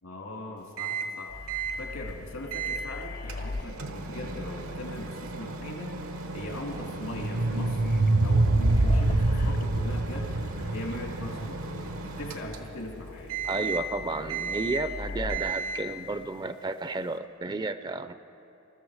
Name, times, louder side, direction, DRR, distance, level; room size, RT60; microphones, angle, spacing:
voice 1, 0.0-1.3 1.8-5.9 6.3-7.8 8.2-10.3 10.7-13.4, left 1 dB, 85° left, 0 dB, 2.6 m, -40 dB
Microwave oven, 0.8-1.2 1.5-1.8 2.5-2.9 3.3-12.9 13.3-13.9 14.3-14.9 15.3-15.9, right 4 dB, 85° right, 1.0 m, -36 dB
sound 1, 1.3-15.4, left 3 dB, 40° left, 0.5 m, -41 dB
sound 2, 6.9-12.0, right 2 dB, 70° right, 0.7 m, -25 dB
voice 2, 13.4-18.1, right 3 dB, 20° right, 12 dB, 0.4 m, -32 dB
20.5 x 13.5 x 4.9 m, 2.8 s
head